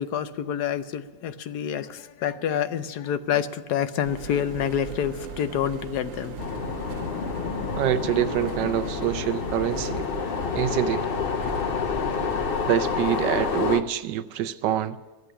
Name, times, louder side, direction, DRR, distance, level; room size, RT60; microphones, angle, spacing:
voice 1, 0.0-6.4, left 9 dB, 70° left, 1.2 m, -28 dB
sound 1, 4.0-13.7, right 5 dB, 55° right, 1.1 m, -38 dB
sound 2, 6.4-13.8, left 6 dB, 55° left, 0.6 m, -28 dB
voice 2, 7.7-10.0 10.5-11.1 12.7-15.0, right 11 dB, 80° right, 1.3 m, -25 dB
14.0 x 8.1 x 9.7 m
omnidirectional pair, 1.9 m